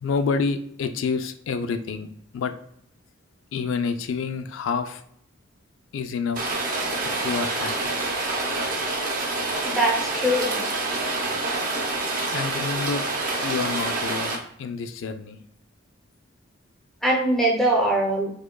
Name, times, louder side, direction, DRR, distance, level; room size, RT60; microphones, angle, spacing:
voice 1, 0.0-2.5 3.5-5.0 5.9-6.6 7.0-8.0 12.3-13.1 13.4-15.4, left 5 dB, 65° left, 9 dB, 0.3 m, -28 dB
Rain, 6.4-14.4, right 2 dB, 40° right, 0.6 m, -27 dB
voice 2, 9.6-10.6 17.0-18.3, right 1 dB, ahead, -1 dB, 0.6 m, -22 dB
4.8 x 2.2 x 2.2 m, 0.68 s
head